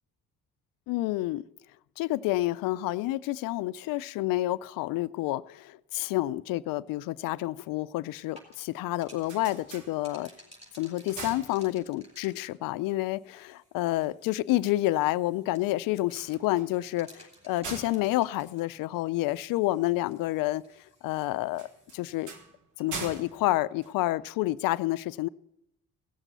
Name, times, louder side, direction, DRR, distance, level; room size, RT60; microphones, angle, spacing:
voice 1, 0.9-1.4 2.0-10.3 10.8-20.6 21.0-21.7 21.9-22.3 22.8-25.3, left 17 dB, 70° left, 0.5 m, -29 dB
sound 1, 8.2-22.3, equal, 20° right, 4.7 m, -57 dB
sound 2, 9.0-10.5 10.9-12.2 16.0-19.4 21.5-24.6, right 4 dB, 55° right, 1.6 m, -44 dB
17.0 x 7.3 x 6.7 m
supercardioid pair, 60°, 35 cm